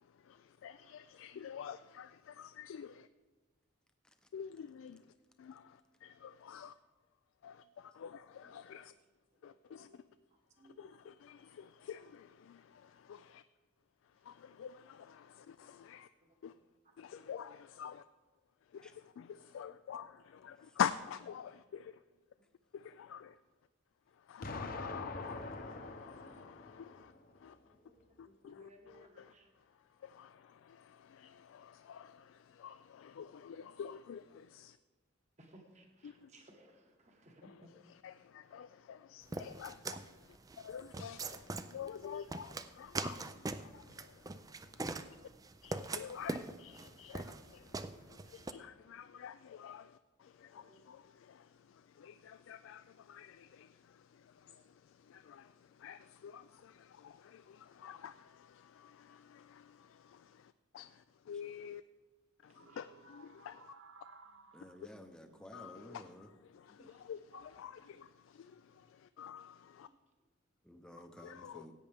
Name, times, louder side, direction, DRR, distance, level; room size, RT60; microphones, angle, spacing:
voice 1, 0.0-3.1 4.3-5.0 5.4-6.8 7.4-8.9 9.4-10.0 10.8-13.4 14.2-16.1 16.4-16.5 17.0-18.0 18.7-22.0 22.7-23.4 24.1-27.6 28.2-29.3 30.0-34.8 36.0-36.3 37.4-45.1 45.6-61.8 62.4-63.7 64.8-64.9 65.5-69.9 71.2-71.7, left 8 dB, 80° left, 12 dB, 0.3 m, -48 dB
voice 2, 9.7-10.0 10.6-11.2 16.5-16.6 24.4-24.6 27.8-29.5 35.4-37.7 50.5-50.8 62.5-62.8 66.7-67.0, right 1 dB, 35° right, 2 dB, 1.4 m, -62 dB
Explosion, 24.4-27.4, left 2 dB, 45° left, 0.7 m, -45 dB
sound 1, 39.3-48.5, right 3 dB, 20° right, 0.3 m, -42 dB
sound 2, 62.5-66.4 67.2-67.6 68.5-68.9, right 3 dB, 80° right, 0.7 m, -60 dB
voice 3, 64.5-66.3 70.6-71.7, equal, 5° left, 5 dB, 0.7 m, -53 dB
16.0 x 8.5 x 3.5 m, 1.3 s
head